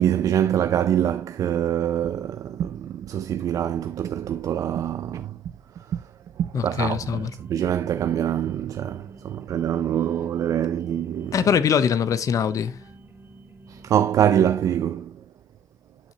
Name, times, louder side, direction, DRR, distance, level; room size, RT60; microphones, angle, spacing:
voice 1, 0.0-5.4 5.8-6.0 6.4-11.4 13.7-15.2, right 10 dB, 75° right, 0.4 m, -24 dB
voice 2, 6.5-7.3 11.3-12.8, left 7 dB, 70° left, 0.7 m, -22 dB
sound 1, 6.6-14.0, right 2 dB, 45° right, 2.2 m, -48 dB
11.5 x 4.1 x 2.8 m
supercardioid pair, 50°, 6 cm